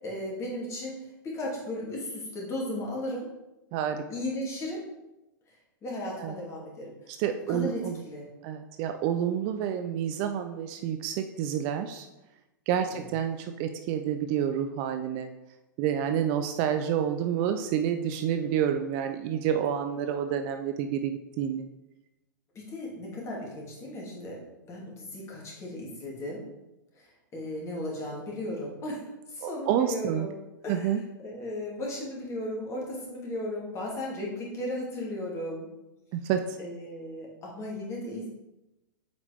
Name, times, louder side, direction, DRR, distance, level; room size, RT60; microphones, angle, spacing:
voice 1, 0.0-3.3 4.1-4.8 5.5-5.6 5.8-6.9 7.5-8.3 12.9-13.1 22.5-24.4 24.7-26.4 26.9-30.3 30.6-35.7 36.6-38.3, left 1 dB, 25° left, -3 dB, 2.5 m, -36 dB
voice 2, 3.7-4.0 6.2-6.3 7.2-7.9 8.4-12.1 12.7-15.3 15.8-21.6 29.4-30.3 30.7-31.0 36.1-36.6, right 9 dB, 40° right, 7 dB, 0.5 m, -29 dB
7.8 x 4.9 x 3.5 m, 0.97 s
figure-of-eight pair, 100°, 11 cm